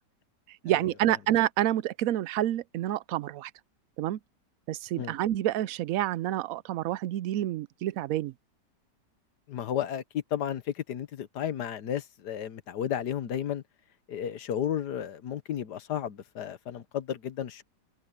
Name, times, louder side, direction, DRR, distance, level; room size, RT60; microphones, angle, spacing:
voice 1, 0.6-3.5 4.0-4.2 4.7-8.3, right 13 dB, 70° right, 0.8 m, -28 dB
voice 2, 9.5-13.6 14.1-17.6, left 10 dB, 70° left, 1.6 m, -33 dB
omnidirectional pair, 1.9 m